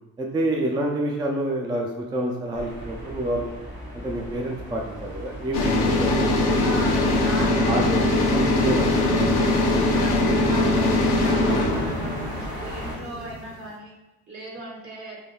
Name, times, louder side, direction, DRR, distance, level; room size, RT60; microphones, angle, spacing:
voice 1, 0.2-3.5 3.9-6.7 7.0-7.1 7.7-7.8 8.3-8.9, right 1 dB, 15° right, 0 dB, 0.3 m, -28 dB
sound 1, 2.5-13.0, equal, 85° right, 0.8 m, -37 dB
sound 2, 5.5-13.5, left 2 dB, 70° left, 0.6 m, -22 dB
voice 2, 6.5-8.4 9.9-13.9 14.3-15.2, right 1 dB, 65° right, -7 dB, 1.3 m, -37 dB
3.2 x 2.3 x 2.3 m, 1.0 s
cardioid pair, 90°, 30 cm